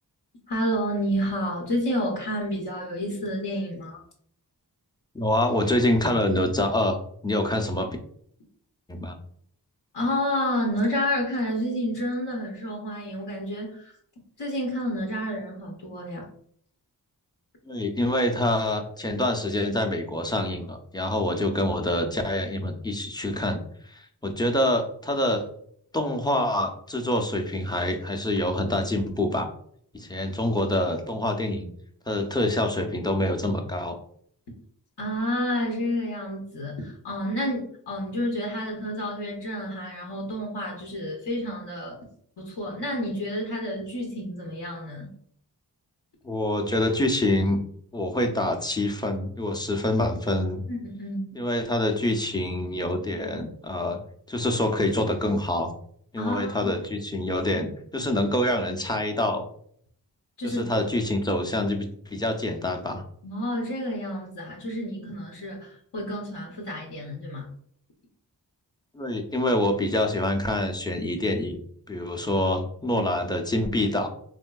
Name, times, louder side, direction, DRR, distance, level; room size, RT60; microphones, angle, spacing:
voice 1, 0.5-4.0 9.9-13.9 14.4-16.3 35.0-42.0 42.4-45.1 50.7-51.4 56.2-56.8 60.4-60.8 63.2-67.5, equal, 75° left, -1 dB, 0.8 m, -30 dB
voice 2, 5.1-7.0 7.2-8.0 8.9-9.2 17.6-25.5 25.9-29.5 29.9-31.7 32.1-34.0 46.2-47.6 47.9-50.6 51.4-54.0 54.3-55.7 56.1-59.4 60.4-63.0 68.9-71.6 71.9-74.1, left 1 dB, 10° left, 3 dB, 0.5 m, -26 dB
3.6 x 2.6 x 2.3 m, 0.63 s
wide cardioid pair, 65°, 41 cm